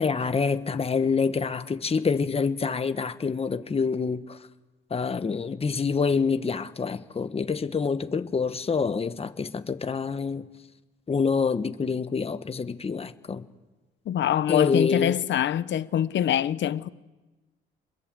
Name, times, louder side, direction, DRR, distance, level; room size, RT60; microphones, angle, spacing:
voice 1, 0.0-4.4 4.9-10.5 11.1-13.5 14.5-15.2, left 5 dB, 30° left, 1.3 m, -26 dB
voice 2, 14.1-16.9, left 10 dB, 65° left, 1.0 m, -24 dB
27.0 x 22.0 x 7.7 m
cardioid pair, 90°, 20 cm